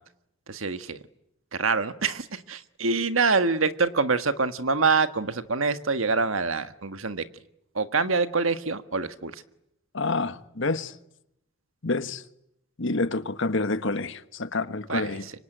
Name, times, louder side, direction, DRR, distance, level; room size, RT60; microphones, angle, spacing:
voice 1, 0.5-1.0 1.5-7.2 7.7-9.4 14.9-15.3, right 4 dB, 80° right, 1.5 m, -25 dB
voice 2, 9.9-10.9 11.8-12.2 12.8-15.3, left 3 dB, 65° left, 1.4 m, -28 dB
26.0 x 25.0 x 9.1 m
head